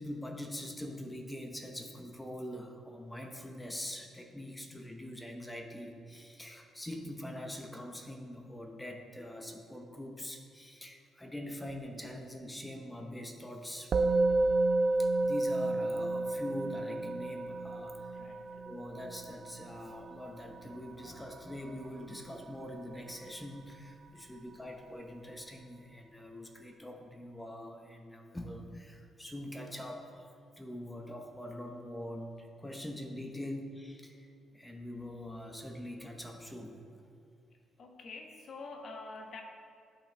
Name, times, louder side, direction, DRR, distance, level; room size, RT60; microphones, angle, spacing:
voice 1, 0.0-13.9 15.0-18.2 18.6-30.3 30.6-34.3 34.5-36.8, left 1 dB, 10° left, 3 dB, 1.0 m, -43 dB
Musical instrument, 13.9-23.4, right 2 dB, 55° right, 0.4 m, -32 dB
voice 2, 18.1-18.6 24.1-24.3 37.8-39.4, left 3 dB, 55° left, 3 dB, 1.1 m, -47 dB
11.5 x 5.6 x 3.4 m, 2.3 s
cardioid pair, 90°, 0 cm